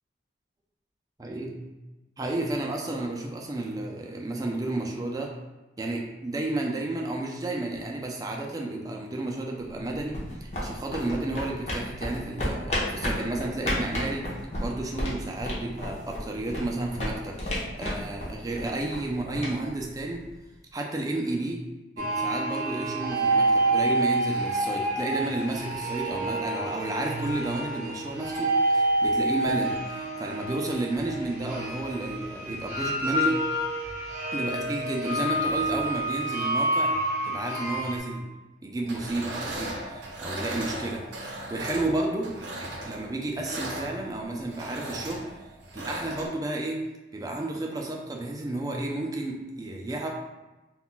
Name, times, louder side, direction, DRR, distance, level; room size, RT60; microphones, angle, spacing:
voice 1, 1.2-1.5 2.2-5.3 5.8-14.3 14.6-20.2 20.7-21.6 22.0-33.4 34.3-36.9 37.2-38.3 38.6-45.3 45.7-46.9 47.1-50.1, right 2 dB, 20° right, 0 dB, 0.3 m, -32 dB
sound 1, 9.7-20.5, left 1 dB, 40° left, 0.6 m, -34 dB
sound 2, 22.0-38.0, right 1 dB, 45° right, 0.7 m, -28 dB
sound 3, 38.8-46.3, right 1 dB, 80° right, 0.5 m, -37 dB
2.3 x 2.2 x 3.7 m, 1.1 s
head